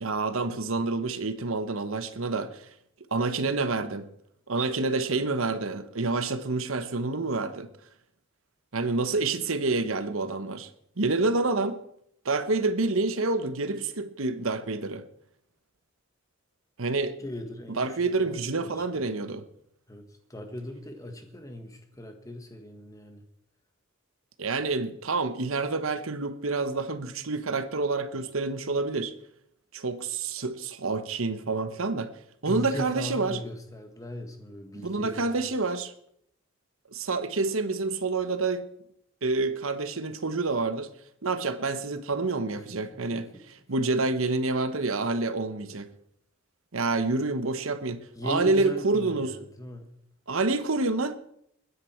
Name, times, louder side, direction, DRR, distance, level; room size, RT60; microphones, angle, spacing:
voice 1, 0.0-2.6 3.1-4.1 4.5-7.7 8.7-10.7 11.0-11.8 12.2-15.0 16.8-17.1 17.8-19.4 24.4-29.1 29.7-32.1 32.4-33.4 34.7-35.9 36.9-38.7 39.2-40.9 41.2-45.9 46.7-49.3 50.3-51.2, right 3 dB, 75° right, 1.1 m, -28 dB
voice 2, 17.2-19.2 19.9-23.2 32.5-35.4 42.5-42.6 43.1-43.4 48.2-49.9, equal, 15° left, 1.6 m, -39 dB
21.0 x 9.9 x 4.5 m
head